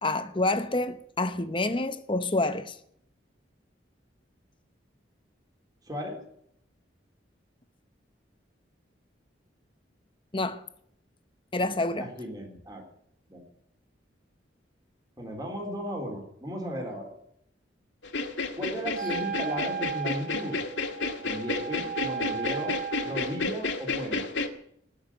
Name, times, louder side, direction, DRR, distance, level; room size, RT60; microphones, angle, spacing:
voice 1, 0.0-2.7 10.3-10.6 11.5-12.1, left 2 dB, 25° left, 0.9 m, -28 dB
voice 2, 5.8-6.2 12.0-12.8 13.3-13.4 15.2-17.1 18.6-20.6 21.2-22.8 23.0-24.3, equal, 20° right, 3.6 m, -35 dB
sound 1, 18.0-24.5, left 3 dB, 80° left, 2.0 m, -31 dB
Wind instrument woodwind instrument, 18.9-23.5, right 7 dB, 45° right, 0.6 m, -36 dB
19.5 x 6.6 x 9.8 m
head